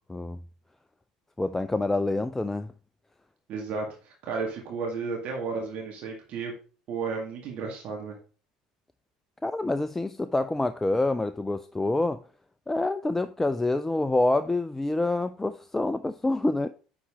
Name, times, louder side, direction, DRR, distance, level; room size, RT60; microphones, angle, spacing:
voice 1, 1.4-2.7 9.4-12.2 12.7-16.7, left 2 dB, 10° left, 0.4 m, -27 dB
voice 2, 3.5-3.9 4.2-6.5 6.9-8.2, right 4 dB, 50° right, 2.0 m, -33 dB
9.7 x 4.1 x 3.7 m
figure-of-eight pair, 65°, 3 cm